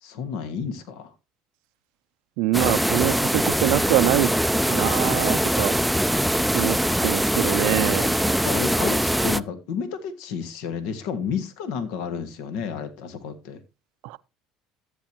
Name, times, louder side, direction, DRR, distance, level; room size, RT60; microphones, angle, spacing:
voice 1, 0.0-1.1 8.4-13.6, left 6 dB, 75° left, 1.5 m, -31 dB
voice 2, 2.4-4.3 4.7-5.8 6.5-8.2 14.0-14.2, right 18 dB, 75° right, 0.5 m, -24 dB
sound 1, 2.5-9.4, equal, ahead, 0.5 m, -22 dB
14.0 x 8.3 x 2.9 m
supercardioid pair, 80°, 0 cm